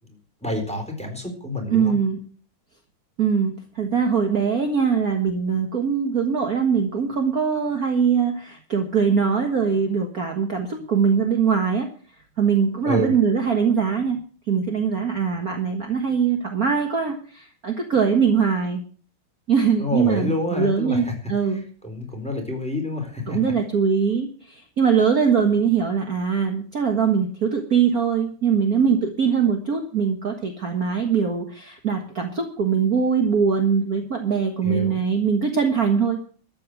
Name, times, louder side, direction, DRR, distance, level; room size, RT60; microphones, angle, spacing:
voice 1, 0.0-1.9 12.8-13.1 19.8-21.1 21.5-23.5 34.6-35.0, left 1 dB, 5° left, 2 dB, 4.1 m, -28 dB
voice 2, 1.7-2.2 3.2-11.9 12.4-18.8 19.5-21.7 23.3-36.2, right 6 dB, 45° right, 4 dB, 1.9 m, -22 dB
13.5 x 8.7 x 7.7 m, 0.43 s
omnidirectional pair, 2.4 m